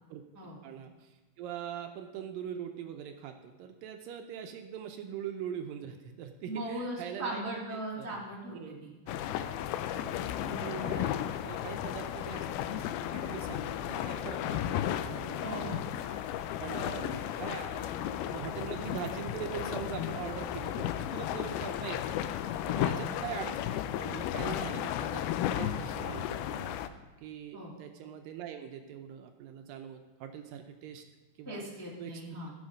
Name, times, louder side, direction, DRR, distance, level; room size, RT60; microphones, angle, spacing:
voice 1, 0.6-7.4 7.7-8.2 8.5-9.0 10.0-10.3 10.6-16.3 16.6-23.6 24.0-26.8 27.2-31.0 31.4-31.6 32.0-32.2, right 9 dB, 80° right, 5 dB, 2.3 m, -42 dB
voice 2, 6.4-9.5 10.4-10.6 15.4-15.8 22.7-23.1 24.5-24.7 27.5-27.7 31.4-32.5, right 1 dB, 10° left, -5 dB, 1.1 m, -39 dB
sound 1, 9.1-26.9, left 11 dB, 90° left, 2.5 m, -34 dB
15.0 x 7.1 x 5.3 m, 1.1 s
omnidirectional pair, 4.3 m